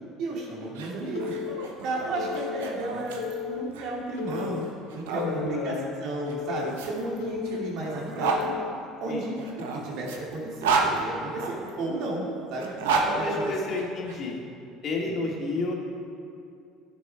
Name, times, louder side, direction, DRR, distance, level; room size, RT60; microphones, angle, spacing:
voice 1, 0.2-4.6 4.9-8.5 9.0-9.4 9.7-13.5 15.0-15.2, right 2 dB, 65° right, -3 dB, 2.5 m, -33 dB
sound 1, 0.6-5.3 6.2-8.4 9.4-11.7 12.5-14.2, right 4 dB, 90° right, 1.0 m, -31 dB
Telephone, 1.1-1.7 2.2-2.7 3.2-3.7 4.2-4.7 5.2-5.7 6.2-6.7 7.2-7.7 8.2-8.7, left 10 dB, 90° left, 0.3 m, -34 dB
voice 2, 5.1-5.9 9.0-9.3 13.0-14.4 14.8-15.7, left 2 dB, 50° left, -1 dB, 2.2 m, -31 dB
11.5 x 7.0 x 4.6 m, 2.5 s
supercardioid pair, 85°, 0 cm